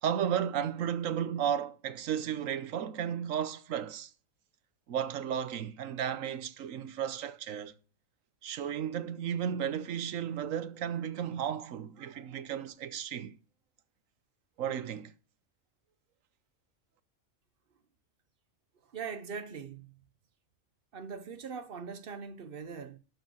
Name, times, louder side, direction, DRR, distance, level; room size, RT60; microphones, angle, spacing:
voice 1, 0.0-4.1 4.9-7.7 8.4-13.3 14.6-15.1, right 9 dB, 85° right, 1.2 m, -34 dB
voice 2, 18.9-19.9 20.9-23.0, right 6 dB, 50° right, 1.1 m, -41 dB
11.5 x 6.6 x 6.4 m
omnidirectional pair, 1.3 m